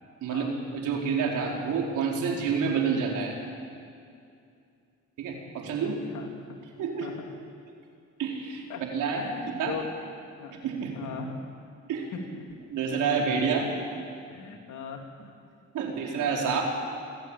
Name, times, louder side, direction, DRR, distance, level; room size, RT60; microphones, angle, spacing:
voice 1, 0.2-3.3 5.2-6.0 6.8-7.1 8.2-9.2 9.6-9.7 10.6-10.9 11.9-12.1 12.7-13.7 15.7-16.6, right 6 dB, 85° right, 0 dB, 4.3 m, -28 dB
voice 2, 5.8-6.6 7.0-7.1 8.7-8.8 9.2-9.9 10.4-10.6 10.9-11.4 12.1-12.4 14.3-15.1, left 6 dB, 75° left, 1 dB, 3.5 m, -39 dB
26.0 x 14.0 x 8.9 m, 2.4 s
cardioid pair, 90°, 30 cm